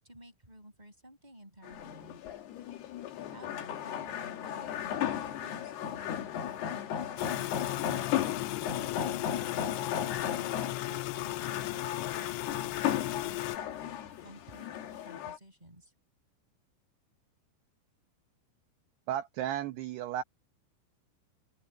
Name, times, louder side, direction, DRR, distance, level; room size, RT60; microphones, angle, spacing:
voice 1, 0.0-2.2 3.3-6.3 7.3-8.0 8.6-13.8 14.2-15.9, right 1 dB, 10° right, 7.1 m, -54 dB
sound 1, 1.6-15.4, left 10 dB, 60° left, 3.6 m, -35 dB
sound 2, 7.2-13.6, left 22 dB, 90° left, 2.7 m, -36 dB
voice 2, 19.1-20.2, right 11 dB, 75° right, 2.6 m, -34 dB
open air
omnidirectional pair, 5.9 m